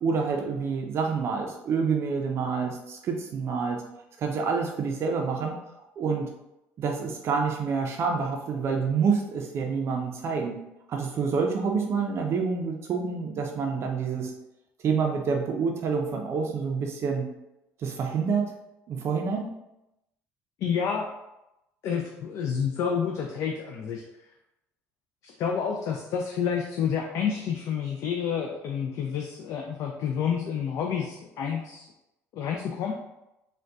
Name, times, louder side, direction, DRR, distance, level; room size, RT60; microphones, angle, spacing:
voice 1, 0.0-3.8 4.2-5.5 6.0-6.3 6.8-10.6 10.9-14.3 14.8-17.3 17.8-18.5 18.9-19.5, right 5 dB, 50° right, 2 dB, 0.4 m, -27 dB
voice 2, 20.6-21.1 21.8-24.0 25.2-31.9 32.3-32.9, left 7 dB, 60° left, 1 dB, 0.4 m, -29 dB
3.7 x 2.2 x 2.3 m, 0.90 s
supercardioid pair, 100°, 6 cm